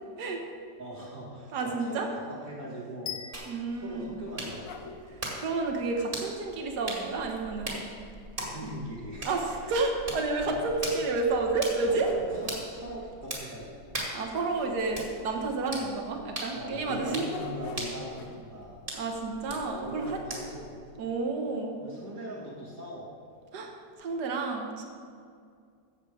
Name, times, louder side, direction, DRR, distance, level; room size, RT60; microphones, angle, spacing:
voice 1, 0.8-3.4 3.7-4.9 8.4-9.4 10.5-10.6 11.1-11.2 12.1-14.0 15.7-16.0 16.5-18.8 19.5-20.8 21.8-23.1, right 1 dB, 50° right, -8 dB, 2.4 m, -41 dB
voice 2, 1.5-2.1 3.5-4.1 5.1-7.8 8.6-8.7 9.2-12.1 14.1-17.3 18.9-20.2 21.0-21.7 23.5-23.7 24.0-24.8, right 3 dB, 65° right, 2 dB, 1.8 m, -30 dB
sound 1, 3.1-5.1, left 8 dB, 55° left, 0.8 m, -42 dB
sound 2, 3.3-20.7, right 1 dB, 30° right, 2.4 m, -41 dB
sound 3, 4.1-5.6 7.8-7.9 8.4-8.5 9.2-9.3 9.9-10.0 11.5-12.8 14.1-15.9 16.8-18.7 19.6-20.6, left 4 dB, 80° left, 1.6 m, -44 dB
14.5 x 7.5 x 4.9 m, 2.2 s
omnidirectional pair, 1.9 m